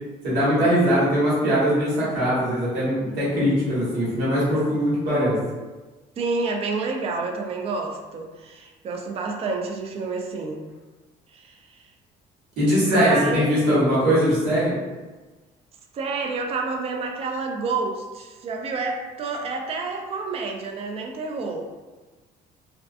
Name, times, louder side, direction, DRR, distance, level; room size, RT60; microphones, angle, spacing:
voice 1, 0.2-5.4 12.6-14.7, equal, 85° right, -8 dB, 1.3 m, -21 dB
voice 2, 5.1-5.4 6.2-10.6 11.3-11.8 12.9-13.6 15.9-21.7, right 4 dB, 35° right, 2 dB, 0.3 m, -29 dB
2.3 x 2.3 x 2.4 m, 1.3 s
cardioid pair, 110°, 17 cm